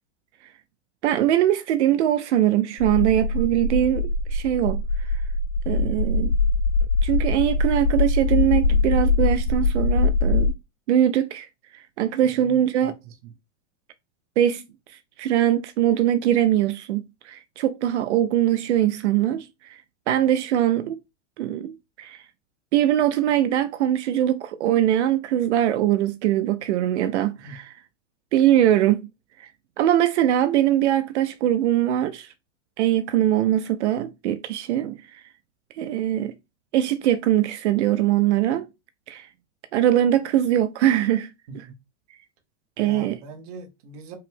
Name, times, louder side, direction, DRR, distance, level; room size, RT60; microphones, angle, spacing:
voice 1, 1.0-5.1 5.7-6.3 7.0-10.5 10.9-11.5 11.7-12.9 14.4-14.6 14.9-19.8 20.1-21.0 21.4-22.3 22.7-27.7 28.3-29.0 29.4-29.5 29.8-32.3 32.8-35.3 35.7-36.3 36.7-38.7 39.1-39.3 39.7-41.6 42.8-43.2, right 12 dB, 65° right, 0.5 m, -22 dB
Earth Rumble, 2.8-10.5, left 3 dB, 80° left, 2.1 m, -22 dB
voice 2, 12.4-13.3 27.4-27.6 41.5-41.8 42.8-44.2, right 4 dB, 30° right, 0.7 m, -42 dB
5.5 x 2.0 x 3.4 m
supercardioid pair, 180°, 37 cm